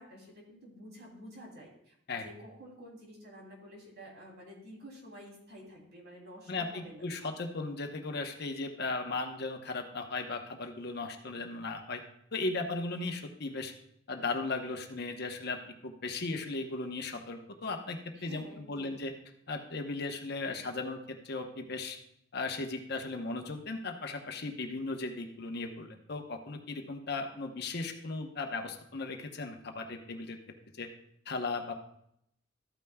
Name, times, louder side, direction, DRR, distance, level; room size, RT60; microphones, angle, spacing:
voice 1, 0.0-7.0 18.1-19.0, equal, 60° right, -1 dB, 3.0 m, -50 dB
voice 2, 6.5-12.0 12.3-13.7 14.1-15.6 15.8-19.1 19.5-22.0 22.3-30.4 30.8-30.9 31.3-31.7, left 3 dB, 60° left, 4 dB, 1.0 m, -36 dB
13.5 x 9.0 x 2.3 m, 0.73 s
head